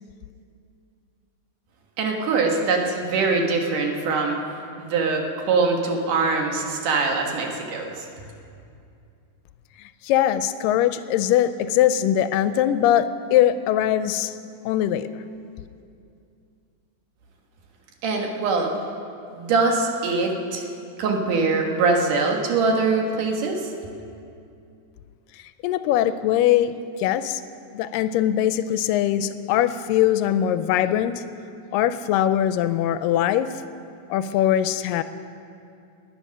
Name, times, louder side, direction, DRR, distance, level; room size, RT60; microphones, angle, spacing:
voice 1, 2.0-4.4 4.8-8.1 18.0-18.7 19.3-20.7 21.0-23.7, right 4 dB, 70° right, 2 dB, 2.8 m, -23 dB
voice 2, 10.0-14.4 14.7-15.1 25.6-26.7 27.0-27.4 27.7-31.2 31.7-33.5 34.1-35.0, left 11 dB, 85° left, 12 dB, 2.1 m, -21 dB
19.0 x 9.9 x 6.4 m, 2.5 s
omnidirectional pair, 4.0 m